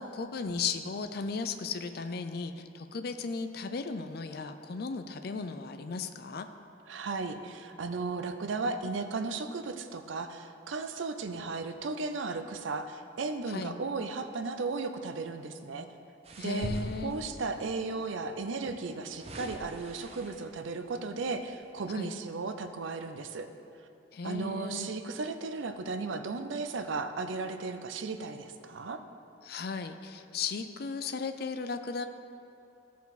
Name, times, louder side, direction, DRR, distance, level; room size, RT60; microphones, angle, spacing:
voice 1, 0.0-6.5 13.5-13.8 16.4-17.2 21.9-22.1 24.1-24.9 29.4-32.0, left 4 dB, 55° left, 8 dB, 0.4 m, -36 dB
voice 2, 6.9-15.9 16.4-16.7 17.0-23.5 24.2-29.0, right 3 dB, 90° right, 8 dB, 0.5 m, -35 dB
sound 1, 16.2-17.6 18.6-20.6 21.2-21.4, right 1 dB, 35° right, 0.6 m, -41 dB
14.0 x 4.6 x 4.1 m, 2.6 s
head